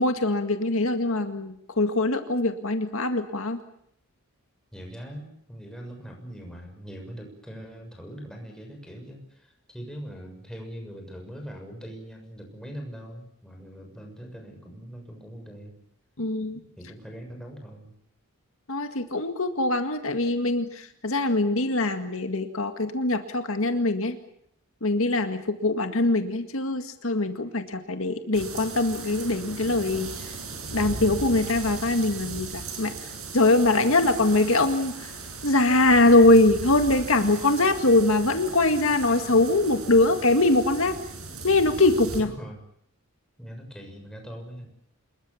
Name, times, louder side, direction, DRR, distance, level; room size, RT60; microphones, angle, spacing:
voice 1, 0.0-3.6 16.2-16.6 18.7-24.2 24.8-30.1 30.7-32.9 33.3-34.9 35.4-41.0 41.4-42.3, left 2 dB, 65° left, 7 dB, 2.0 m, -22 dB
voice 2, 4.7-15.8 16.8-17.9 42.2-42.6 43.4-44.7, equal, 5° left, 2 dB, 6.7 m, -41 dB
sound 1, 28.3-42.2, right 3 dB, 80° right, 7.6 m, -38 dB
27.5 x 22.0 x 7.2 m, 0.71 s
head